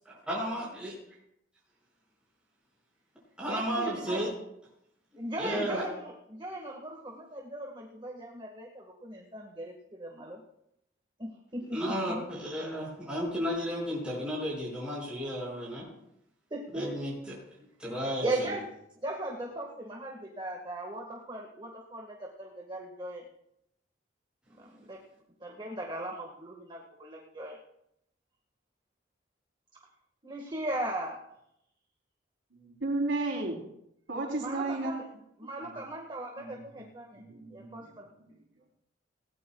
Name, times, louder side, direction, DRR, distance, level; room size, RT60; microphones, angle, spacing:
voice 1, 0.3-0.9 3.4-4.3 5.4-5.8 11.7-15.9 16.7-17.4 17.8-18.5, equal, 5° right, -6 dB, 5.6 m, -33 dB
voice 2, 3.5-4.2 5.2-10.4 11.2-11.8 12.1-12.2 16.5-16.9 18.2-18.6 19.0-23.2 24.5-25.0 25.4-27.6 30.2-31.2 34.4-35.0 35.4-37.2 37.5-38.1, right 1 dB, 25° right, 0 dB, 1.6 m, -38 dB
voice 3, 32.6-33.6 34.1-34.9 36.4-36.8 37.1-37.9, right 2 dB, 85° right, -1 dB, 3.5 m, -33 dB
20.0 x 18.0 x 2.3 m, 0.78 s
head